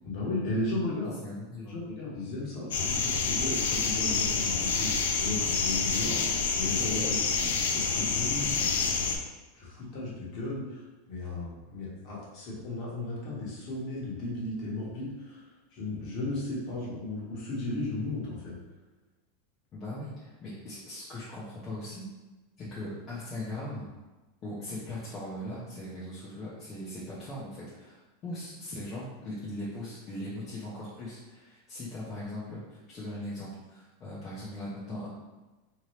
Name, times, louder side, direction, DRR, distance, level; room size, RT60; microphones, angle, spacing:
voice 1, 0.0-1.2 1.6-8.9 9.5-18.5, left 2 dB, 40° left, -5 dB, 1.3 m, -35 dB
voice 2, 1.2-1.7 19.7-22.0 22.6-23.9 24.4-35.1, left 1 dB, 25° left, -9 dB, 0.8 m, -39 dB
sound 1, 2.7-9.2, left 5 dB, 80° left, 0.5 m, -28 dB
3.6 x 2.9 x 3.2 m, 1.2 s
supercardioid pair, 165°, 0 cm